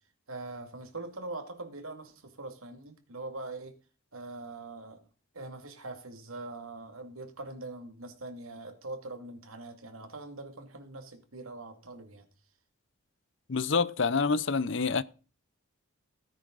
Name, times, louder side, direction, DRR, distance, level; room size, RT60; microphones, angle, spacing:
voice 1, 0.3-3.8 4.1-5.0 5.3-12.3, right 2 dB, 85° right, 2.4 m, -42 dB
voice 2, 13.5-15.0, left 4 dB, 60° left, 0.7 m, -27 dB
18.0 x 9.9 x 4.0 m
head